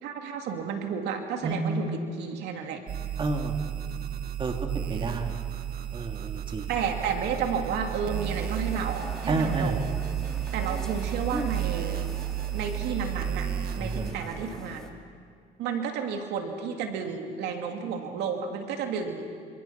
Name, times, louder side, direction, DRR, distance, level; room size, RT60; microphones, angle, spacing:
voice 1, 0.0-2.8 6.7-9.8 10.5-12.0 12.5-13.5 13.8-15.0 15.6-19.3, right 6 dB, 85° right, 3 dB, 2.7 m, -32 dB
voice 2, 1.4-1.8 3.2-3.6 4.4-5.3 5.9-6.7 9.3-9.8 13.8-14.2, right 3 dB, 30° right, 3 dB, 2.8 m, -30 dB
sound 1, 2.9-14.1, right 10 dB, 65° right, 1.8 m, -32 dB
sound 2, 8.1-14.9, left 1 dB, 5° left, 2.8 m, -43 dB
29.0 x 27.0 x 5.9 m, 2.2 s
cardioid pair, 110°, 17 cm